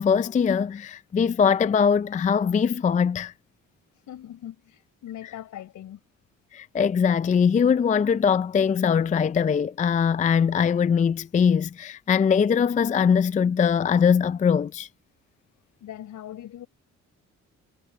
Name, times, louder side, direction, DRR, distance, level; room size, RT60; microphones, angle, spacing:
voice 1, 0.0-3.3 6.5-14.9, left 7 dB, 25° left, 0.4 m, -21 dB
voice 2, 4.1-6.0 15.8-16.7, left 11 dB, 75° left, 5.5 m, -40 dB
cardioid pair, 90°, 30 cm